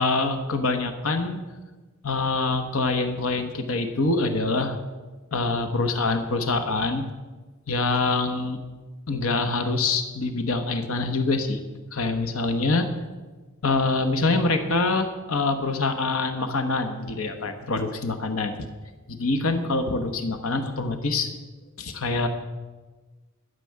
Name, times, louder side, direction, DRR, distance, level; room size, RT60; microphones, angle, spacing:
voice 1, 0.0-1.4 2.0-4.8 5.3-7.0 7.7-8.6 9.1-11.6 11.9-12.9 13.6-18.6 19.1-21.3 21.8-22.3, left 3 dB, 70° left, 7 dB, 1.1 m, -25 dB
13.0 x 6.9 x 8.7 m, 1.3 s
head